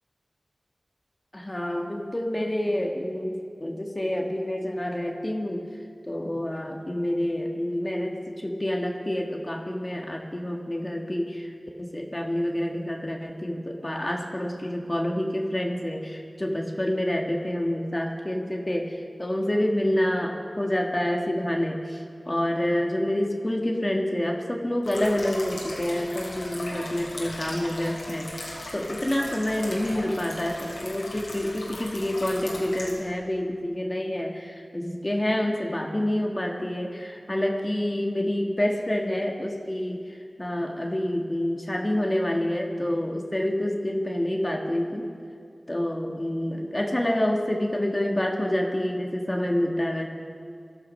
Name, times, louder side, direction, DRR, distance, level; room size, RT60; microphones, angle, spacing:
voice 1, 1.3-5.7 6.1-11.5 11.8-45.1 45.7-50.1, left 1 dB, 30° left, 1 dB, 1.6 m, -28 dB
sound 1, 24.8-32.9, left 1 dB, 85° left, 4.1 m, -38 dB
17.5 x 12.5 x 5.5 m, 2.3 s
cardioid pair, 40°, 0 cm